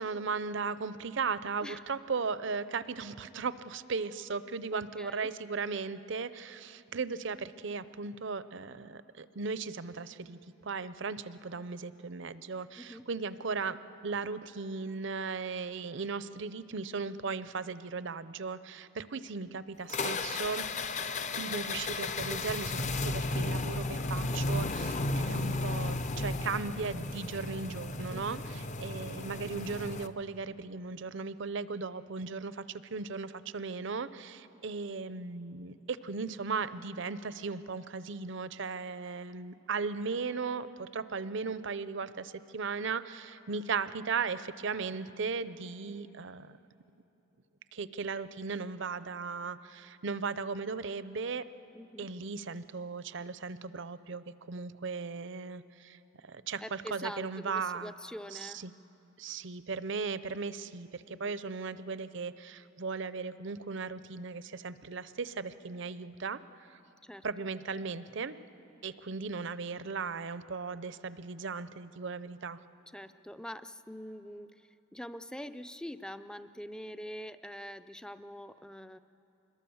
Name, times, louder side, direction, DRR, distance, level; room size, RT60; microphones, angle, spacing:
voice 1, 0.0-20.7 21.3-46.6 47.7-51.5 52.0-56.0 56.2-57.9 58.3-58.7 59.2-66.4 67.2-68.4 68.8-72.6, right 4 dB, 65° right, 14 dB, 0.7 m, -37 dB
voice 2, 4.7-5.3 12.8-13.1 28.1-28.5 51.7-52.1 56.6-58.6 61.1-61.4 67.0-67.5 72.9-79.0, equal, 5° left, 12 dB, 0.5 m, -44 dB
sound 1, 19.9-30.1, left 2 dB, 35° left, 0.7 m, -34 dB
26.0 x 21.5 x 7.1 m, 3.0 s
head